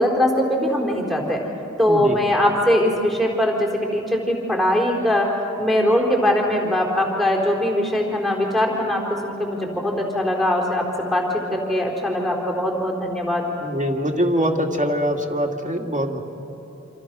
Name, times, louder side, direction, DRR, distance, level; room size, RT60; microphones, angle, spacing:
voice 1, 0.0-1.4 1.8-5.3 5.6-11.2 11.5-13.5, left 1 dB, ahead, -2 dB, 4.2 m, -21 dB
voice 2, 1.9-2.2 13.6-16.2, equal, 25° right, 1 dB, 2.3 m, -23 dB
27.5 x 27.0 x 6.2 m, 3.0 s
wide cardioid pair, 45°, 31 cm